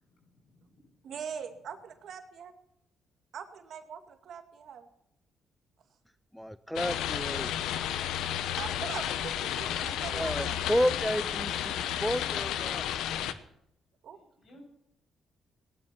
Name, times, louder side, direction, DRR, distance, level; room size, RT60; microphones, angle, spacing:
voice 1, 0.0-1.0 1.5-1.6 14.1-14.6, left 1 dB, 65° left, 2 dB, 8.0 m, -55 dB
voice 2, 1.0-2.5 3.3-4.9 8.6-10.5 14.0-14.2, right 7 dB, 65° right, 6 dB, 2.3 m, -42 dB
voice 3, 6.3-7.5 10.1-12.9, equal, ahead, 14 dB, 0.6 m, -31 dB
sound 1, 6.8-13.3, left 10 dB, 85° left, 1.0 m, -32 dB
18.0 x 11.0 x 6.0 m, 0.77 s
cardioid pair, 90°, 0 cm